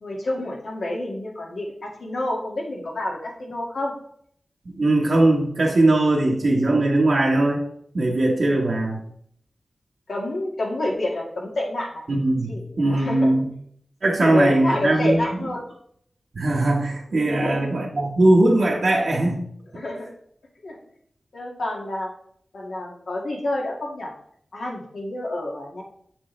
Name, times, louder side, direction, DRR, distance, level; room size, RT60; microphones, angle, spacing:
voice 1, 0.0-3.9 10.1-12.0 12.5-13.3 14.2-15.6 17.2-17.7 19.7-20.1 20.6-20.8 21.3-22.1 22.5-24.1 24.5-25.8, left 1 dB, 75° left, -1 dB, 1.8 m, -28 dB
voice 2, 4.7-7.6 7.9-9.0 12.1-13.5 14.0-15.4 16.3-19.4, right 2 dB, 60° right, -3 dB, 1.2 m, -20 dB
7.6 x 6.1 x 3.2 m, 0.66 s
wide cardioid pair, 90°, 0 cm